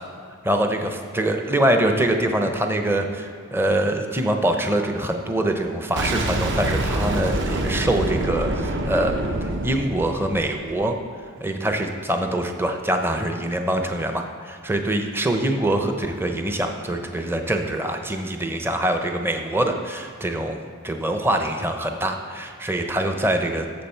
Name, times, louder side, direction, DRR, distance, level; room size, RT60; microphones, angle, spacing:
voice 1, 0.4-11.0 11.4-23.7, right 1 dB, 10° right, 4 dB, 0.6 m, -24 dB
Boom, 6.0-10.8, right 1 dB, 55° right, 0.8 m, -26 dB
12.5 x 7.2 x 4.5 m, 2.3 s
head